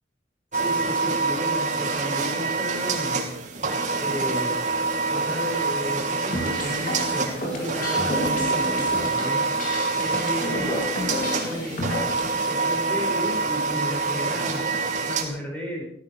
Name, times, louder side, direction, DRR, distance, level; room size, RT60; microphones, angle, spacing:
voice 1, 0.5-3.2 4.0-4.7 5.1-9.5 10.0-10.9 11.4-11.8 12.3-15.8, equal, 5° left, -1 dB, 6.7 m, -33 dB
sound 1, 0.5-15.2, right 4 dB, 45° right, 2.9 m, -26 dB
sound 2, 6.3-12.3, left 1 dB, 50° left, 3.6 m, -31 dB
16.0 x 15.0 x 5.3 m, 0.66 s
head